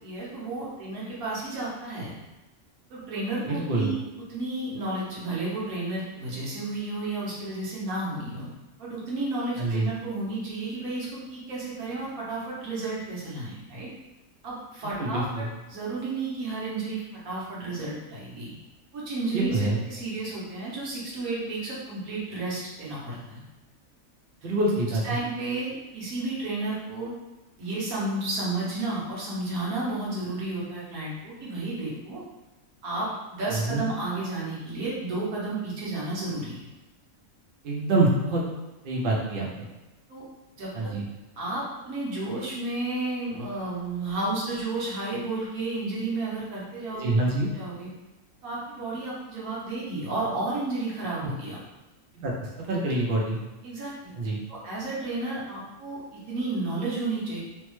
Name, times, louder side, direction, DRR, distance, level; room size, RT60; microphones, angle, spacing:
voice 1, 0.0-2.2 2.9-4.0 4.3-8.5 8.8-13.9 14.4-18.5 18.9-23.4 25.0-27.1 27.6-32.2 32.8-36.7 40.1-40.2 40.5-40.9 41.4-47.1 47.5-47.9 48.4-51.6 53.6-54.1 54.5-57.4, right 2 dB, 80° right, -6 dB, 1.3 m, -32 dB
voice 2, 3.5-3.9 9.6-9.9 14.8-15.5 19.3-19.8 24.4-25.2 33.5-33.8 37.6-38.4 38.8-39.7 40.7-41.0 46.9-47.5 51.2-51.3 52.2-52.3 52.6-53.4 54.1-54.4, right 2 dB, 55° right, -3 dB, 0.6 m, -26 dB
3.2 x 2.0 x 3.0 m, 1.1 s
omnidirectional pair, 1.5 m